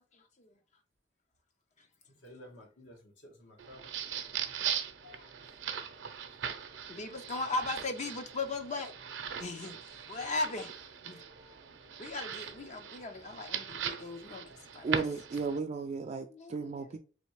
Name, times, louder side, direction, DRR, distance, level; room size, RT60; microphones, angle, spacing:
voice 1, 2.2-3.8 5.0-5.3 11.1-11.6 12.9-13.0 14.4-14.6, left 1 dB, 70° left, 1.3 m, -54 dB
sound 1, 3.6-15.6, right 8 dB, 70° right, 0.6 m, -40 dB
voice 2, 6.9-8.9 9.4-9.8 10.1-10.7 11.0-11.2 12.0-14.5 14.7-15.0 16.3-17.0, left 3 dB, 40° left, 0.6 m, -37 dB
voice 3, 14.8-17.0, right 4 dB, 35° right, 0.3 m, -35 dB
4.2 x 3.2 x 3.1 m
head